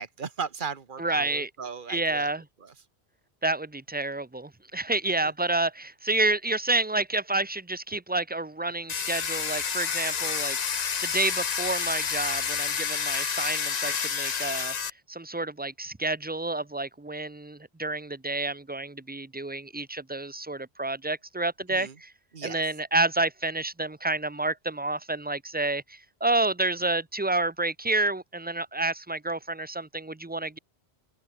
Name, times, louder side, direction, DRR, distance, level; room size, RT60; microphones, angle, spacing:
voice 1, 0.0-2.3 2.6-2.7 5.1-5.3 21.7-22.0 22.3-22.6, right 5 dB, 50° right, 1.4 m, -37 dB
voice 2, 1.0-1.5 1.9-2.4 3.4-10.6 11.0-14.8 15.1-22.1 22.4-30.6, right 2 dB, 10° right, 0.5 m, -29 dB
Domestic sounds home sounds, 8.9-14.9, left 6 dB, 45° left, 0.9 m, -29 dB
open air
omnidirectional pair, 1.1 m